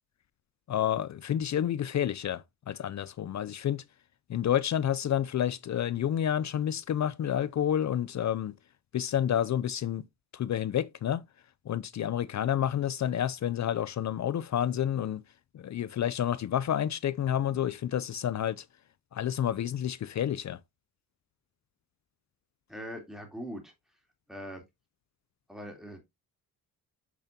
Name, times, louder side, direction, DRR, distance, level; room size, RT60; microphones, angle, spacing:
voice 1, 0.7-3.8 4.3-8.5 8.9-10.1 10.3-11.2 11.7-15.2 15.5-18.7 19.1-20.6, left 10 dB, 50° left, 0.5 m, -29 dB
voice 2, 22.7-23.7 24.3-24.6 25.5-26.0, equal, ahead, 3.1 m, -41 dB
8.3 x 7.0 x 2.7 m
cardioid pair, 110°, 37 cm